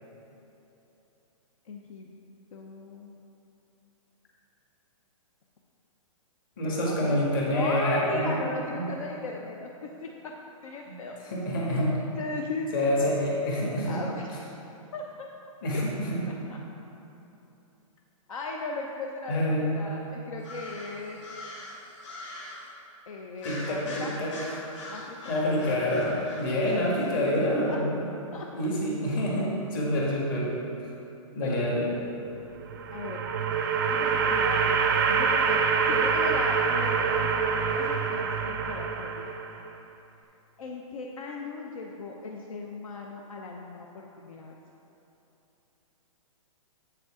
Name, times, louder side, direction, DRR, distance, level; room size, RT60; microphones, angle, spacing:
voice 1, 1.6-2.1 2.5-3.2 6.6-10.3 10.6-11.2 11.7-11.8 12.1-12.7 13.9-14.3 14.9-15.3 16.5-16.6 18.3-21.2 23.1-24.2 24.9-25.4 27.7-27.8 28.3-28.5 31.4-31.7 32.9-33.2 33.9-38.2 38.5-39.3 40.6-44.5, left 3 dB, 70° left, 0 dB, 0.7 m, -38 dB
voice 2, 6.6-8.4 8.7-8.9 10.9-11.0 11.3-12.0 12.7-14.0 15.6-16.3 19.3-19.7 23.4-24.3 25.3-28.1 28.5-30.5 31.3-31.9, left 1 dB, 40° left, -4 dB, 1.7 m, -27 dB
sound 1, 20.4-22.7 23.4-27.4, left 1 dB, 55° left, 1.8 m, -42 dB
sound 2, 32.6-39.7, right 5 dB, 35° right, 0.4 m, -26 dB
7.9 x 6.8 x 3.7 m, 3.0 s
hypercardioid pair, 170°, 18 cm